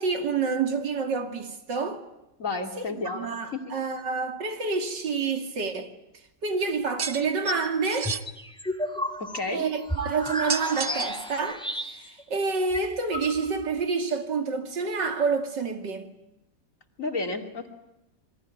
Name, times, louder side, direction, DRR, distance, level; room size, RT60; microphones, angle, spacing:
voice 1, 0.0-2.0 2.8-5.9 6.4-8.2 9.5-11.6 11.9-16.1, right 4 dB, 80° right, 3.1 m, -28 dB
voice 2, 2.4-3.7 9.2-9.6 17.0-17.7, left 3 dB, 45° left, 2.9 m, -32 dB
sound 1, 7.0-7.2 7.8-8.2 10.3-11.2, right 6 dB, 45° right, 1.4 m, -31 dB
sound 2, 7.1-7.7 8.0-12.2 12.5-12.6 12.7-13.7, left 1 dB, 5° left, 2.4 m, -33 dB
28.0 x 22.5 x 9.3 m
omnidirectional pair, 1.9 m